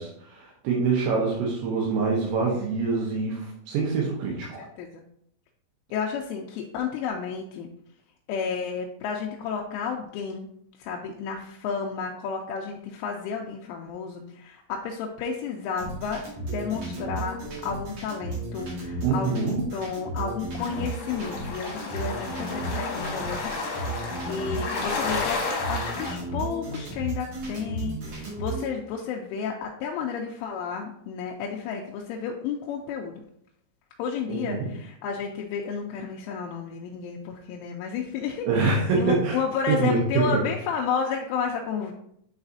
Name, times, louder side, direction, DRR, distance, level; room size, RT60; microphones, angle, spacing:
voice 1, 0.0-4.7 19.0-19.6 34.3-34.7 38.5-39.4 39.7-40.4, right 4 dB, 80° right, -3 dB, 3.5 m, -25 dB
voice 2, 4.6-5.0 5.9-7.7 8.3-10.5 10.8-33.2 34.0-38.7 38.9-41.9, left 6 dB, 85° left, 0 dB, 2.9 m, -32 dB
sound 1, 15.8-28.7, right 2 dB, 55° right, 2.0 m, -34 dB
sound 2, 20.6-26.1, left 3 dB, 65° left, 2.3 m, -32 dB
9.5 x 4.0 x 2.6 m, 0.72 s
omnidirectional pair, 5.9 m